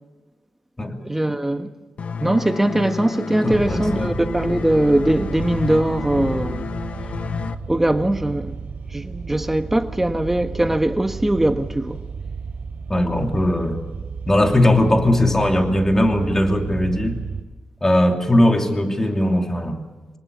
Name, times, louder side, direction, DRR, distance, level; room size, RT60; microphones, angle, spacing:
voice 1, 1.0-1.7 2.2-6.7 7.7-8.6 8.9-12.0, right 1 dB, 10° right, 1.5 m, -21 dB
sound 1, 2.0-7.5, left 5 dB, 60° left, 1.1 m, -30 dB
voice 2, 3.4-4.1 12.9-13.8 14.3-17.2 17.8-19.8, left 1 dB, 15° left, 3.0 m, -19 dB
sound 2, 3.5-17.4, right 5 dB, 85° right, 3.0 m, -33 dB
26.0 x 19.0 x 8.4 m
wide cardioid pair, 115°, 3 cm